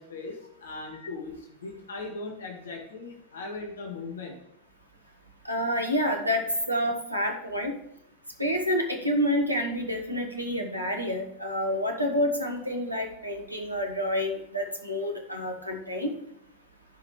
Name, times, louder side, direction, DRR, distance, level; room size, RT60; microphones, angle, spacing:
voice 1, 0.0-4.4, left 3 dB, 65° left, 3 dB, 1.7 m, -39 dB
voice 2, 5.4-7.7 8.4-16.1, equal, 85° right, 2 dB, 1.5 m, -28 dB
14.5 x 5.5 x 3.2 m, 0.79 s
figure-of-eight pair, 90°, 0 cm